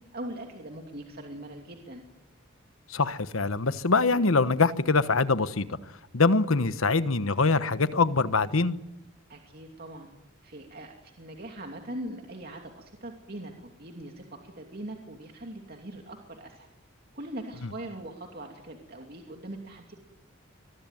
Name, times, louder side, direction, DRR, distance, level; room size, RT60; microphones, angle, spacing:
voice 1, 0.1-2.0 9.3-10.1 10.4-16.7 17.1-19.9, right 1 dB, 45° right, 2.7 m, -41 dB
voice 2, 2.9-5.7 6.1-8.8, left 3 dB, 75° left, 1.2 m, -24 dB
25.0 x 21.0 x 9.2 m
head